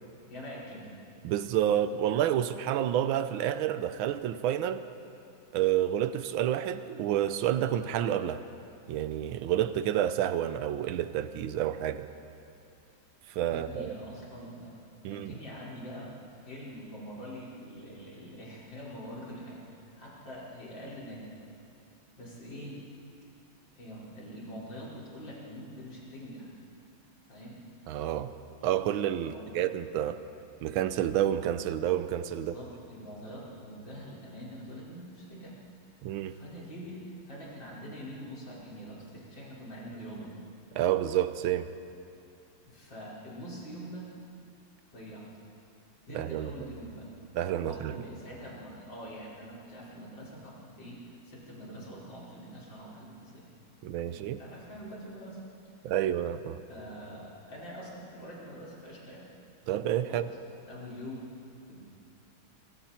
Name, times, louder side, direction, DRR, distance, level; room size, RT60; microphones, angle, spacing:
voice 1, 0.3-0.9 13.5-14.7 15.0-16.1 16.4-21.3 22.2-22.8 23.8-26.5 27.3-27.6 29.2-29.6 32.4-35.6 36.2-40.3 42.6-44.1 44.9-45.3 46.1-47.1 47.6-53.5 54.1-55.4 56.7-59.3 60.1-60.2 60.7-61.3 61.7-61.8, equal, 60° left, -6 dB, 5.8 m, -44 dB
voice 2, 1.2-4.8 5.5-8.4 8.9-12.1 13.3-13.9 15.0-15.4 27.9-28.3 28.6-30.2 30.6-32.5 36.0-36.3 40.7-41.7 46.1-46.5 47.3-48.0 53.8-54.4 55.8-56.6 59.7-60.2, right 11 dB, 80° right, 12 dB, 1.6 m, -29 dB
25.0 x 24.5 x 4.4 m, 2.7 s
omnidirectional pair, 2.3 m